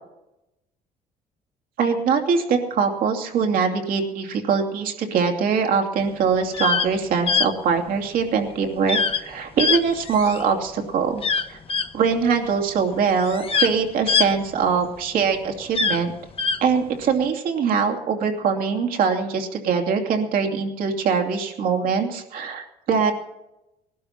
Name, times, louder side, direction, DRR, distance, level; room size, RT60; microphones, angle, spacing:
voice 1, 1.8-11.2 11.5-11.6 11.9-16.1 16.6-23.1, right 6 dB, 70° right, 3 dB, 2.7 m, -22 dB
sound 1, 6.4-6.9 7.3-7.5 8.9-9.2 9.6-10.5 11.2-11.9 12.8-12.9 13.2-15.0 15.6-16.6, left 5 dB, 40° left, 1.1 m, -22 dB
19.5 x 12.0 x 5.8 m, 0.91 s
cardioid pair, 95°, 15 cm